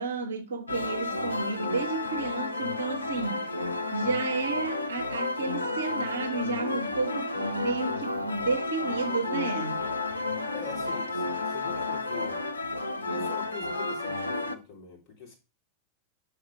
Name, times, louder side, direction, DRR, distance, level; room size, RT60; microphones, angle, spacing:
voice 1, 0.0-3.5 3.9-9.9, right 3 dB, 70° right, 0.9 m, -32 dB
sound 1, 0.7-14.6, left 2 dB, 80° left, 0.6 m, -32 dB
voice 2, 10.5-12.4 12.9-15.3, left 6 dB, 30° left, 3.2 m, -43 dB
6.4 x 4.8 x 4.6 m
figure-of-eight pair, 90°, 0 cm